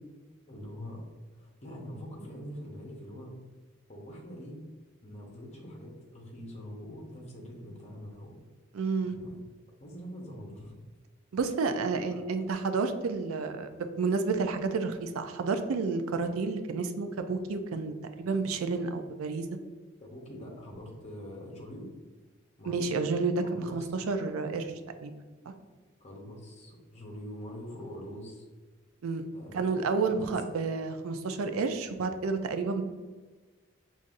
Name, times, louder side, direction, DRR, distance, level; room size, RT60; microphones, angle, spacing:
voice 1, 0.5-1.0 1.3-3.4 3.9-4.6 5.0-8.4 9.0-9.4 9.8-10.8 20.0-21.9 22.6-22.9 23.4-23.9 26.0-28.4 29.3-29.7 30.0-30.3, equal, 30° left, -2 dB, 0.8 m, -44 dB
voice 2, 8.7-9.2 11.3-19.5 22.7-24.7 25.0-25.1 29.0-29.3 29.5-32.8, right 4 dB, 85° right, 8 dB, 0.4 m, -30 dB
5.4 x 2.5 x 2.5 m, 1.4 s
head